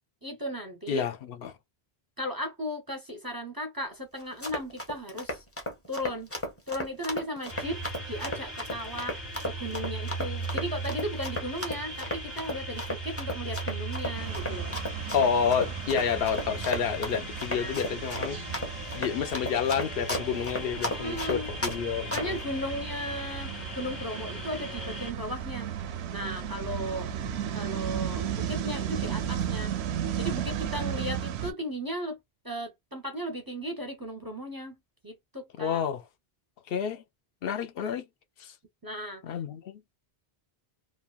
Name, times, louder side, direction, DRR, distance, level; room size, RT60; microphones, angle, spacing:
voice 1, 0.2-1.1 2.2-5.4 5.9-6.3 6.7-14.7 17.6-17.9 20.9-21.5 22.1-25.7 26.1-27.1 27.5-29.7 30.2-32.2 32.4-34.8 35.0-35.8 38.8-39.2, equal, 25° right, 0.6 m, -36 dB
voice 2, 0.9-1.5 15.1-18.4 18.9-22.4 35.6-36.0 36.7-37.0 37.4-38.1 38.4-38.5 39.2-39.8, left 7 dB, 70° left, 0.7 m, -29 dB
Run, 4.2-21.8 22.1-22.4, left 1 dB, 15° left, 0.9 m, -34 dB
sound 1, 7.5-25.1, right 2 dB, 45° left, 1.3 m, -38 dB
sound 2, 14.1-31.5, right 9 dB, 90° right, 0.8 m, -35 dB
3.0 x 2.3 x 2.3 m
omnidirectional pair, 1.0 m